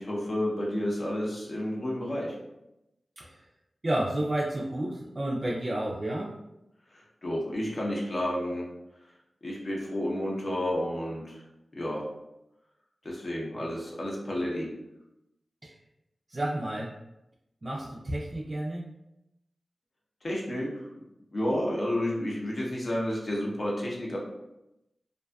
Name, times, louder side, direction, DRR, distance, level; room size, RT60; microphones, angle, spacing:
voice 1, 0.0-2.4 6.9-8.7 9.4-11.4 11.7-12.0 13.0-14.7 20.2-20.7 21.3-24.2, left 1 dB, 50° left, -3 dB, 0.7 m, -31 dB
voice 2, 3.8-6.3 15.6-15.8 16.3-16.9 17.6-18.9, right 1 dB, 40° right, -3 dB, 0.3 m, -31 dB
2.5 x 2.3 x 2.2 m, 0.89 s
wide cardioid pair, 60°, 0 cm